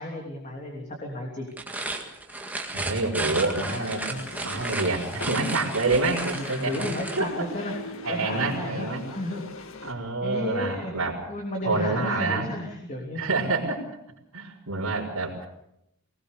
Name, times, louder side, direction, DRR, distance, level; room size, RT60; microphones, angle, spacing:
voice 1, 0.0-1.6 6.6-7.7 8.1-8.9 9.1-9.4 9.8-10.9 11.3-13.2, left 1 dB, 35° left, 0 dB, 3.2 m, -33 dB
sound 1, 1.5-7.3, right 2 dB, 5° right, 1.9 m, -34 dB
voice 2, 2.7-4.2 4.4-6.9 7.2-7.5 8.0-9.0 9.8-11.2 11.6-12.5 13.1-13.8 14.3-15.5, right 3 dB, 75° right, -7 dB, 4.2 m, -27 dB
sound 2, 3.4-9.9, left 3 dB, 60° left, 1.8 m, -40 dB
20.0 x 20.0 x 6.8 m, 0.81 s
head